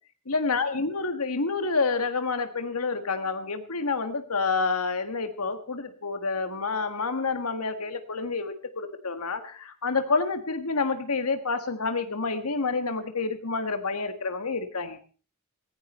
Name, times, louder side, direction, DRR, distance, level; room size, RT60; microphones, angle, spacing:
voice 1, 0.3-15.0, left 4 dB, 85° left, 8 dB, 1.6 m, -28 dB
18.5 x 16.0 x 4.3 m, 0.39 s
head